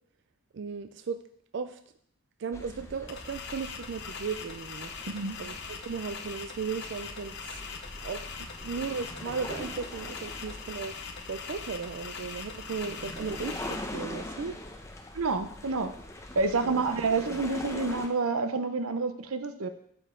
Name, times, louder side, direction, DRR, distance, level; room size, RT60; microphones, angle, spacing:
voice 1, 0.5-1.2 1.5-1.8 2.4-4.9 5.4-7.6 8.0-11.0 11.3-14.6 16.6-16.8, right 5 dB, 55° right, 9 dB, 0.4 m, -36 dB
sound 1, 2.5-18.1, left 1 dB, 15° left, 0.7 m, -43 dB
sound 2, 3.1-13.8, left 5 dB, 55° left, 0.8 m, -42 dB
voice 2, 5.1-5.4 15.1-15.9 16.3-19.7, right 3 dB, 80° right, 10 dB, 0.7 m, -28 dB
11.0 x 5.3 x 3.7 m, 0.69 s
head